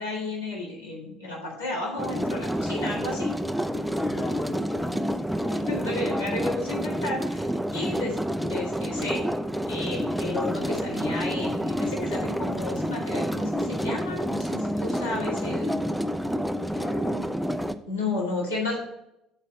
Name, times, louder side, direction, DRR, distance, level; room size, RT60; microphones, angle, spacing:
voice 1, 0.0-3.3 5.4-8.2 8.4-9.2 9.7-15.8 17.9-18.8, left 2 dB, 80° left, -6 dB, 2.2 m, -32 dB
sound 1, 2.0-17.7, equal, ahead, 0.4 m, -29 dB
voice 2, 3.9-5.2 16.7-17.3, left 3 dB, 30° left, 2 dB, 1.0 m, -37 dB
7.1 x 4.2 x 6.1 m, 0.82 s
figure-of-eight pair, 55°, 0 cm